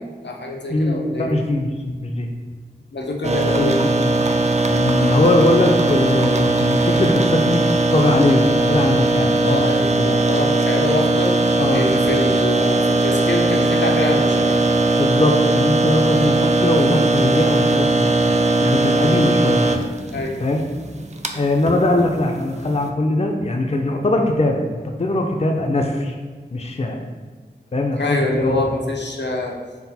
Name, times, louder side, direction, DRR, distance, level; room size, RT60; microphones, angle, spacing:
voice 1, 0.0-1.4 2.9-3.8 9.4-11.4 11.7-14.6 20.1-20.4 28.0-29.6, left 2 dB, 90° left, 1 dB, 0.6 m, -25 dB
voice 2, 0.7-2.3 3.5-4.1 4.7-7.6 7.9-9.7 10.0-10.2 11.6-11.9 15.0-18.0 18.6-19.7 20.4-20.6 21.3-26.2 26.5-27.0 27.7-28.6, left 2 dB, 35° left, 3 dB, 0.4 m, -20 dB
sound 1, 3.2-22.9, right 2 dB, 40° right, 0.4 m, -19 dB
5.8 x 2.0 x 4.1 m, 1.5 s
wide cardioid pair, 50°, 18 cm